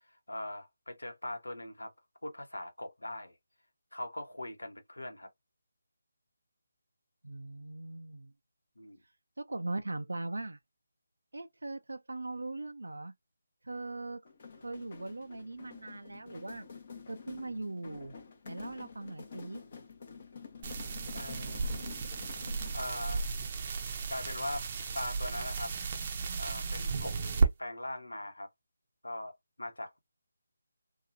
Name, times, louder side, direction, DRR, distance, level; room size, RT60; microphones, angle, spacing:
voice 1, 0.1-1.9 2.2-3.3 3.9-5.3 8.8-9.0 21.1-21.7 22.7-23.3 24.1-24.7 24.9-25.7 26.4-28.5 29.0-30.0, left 1 dB, 90° left, 1.0 m, -41 dB
voice 2, 7.2-8.3 9.4-10.6 11.3-13.1 13.6-14.2 14.6-16.6 17.1-18.2 18.5-19.6 21.6-21.7, right 2 dB, 80° right, 0.4 m, -40 dB
sound 1, 14.2-22.9, left 5 dB, 45° left, 0.8 m, -49 dB
sound 2, 20.6-27.5, right 4 dB, 35° right, 0.6 m, -34 dB
2.8 x 2.3 x 2.5 m
figure-of-eight pair, 160°, 0 cm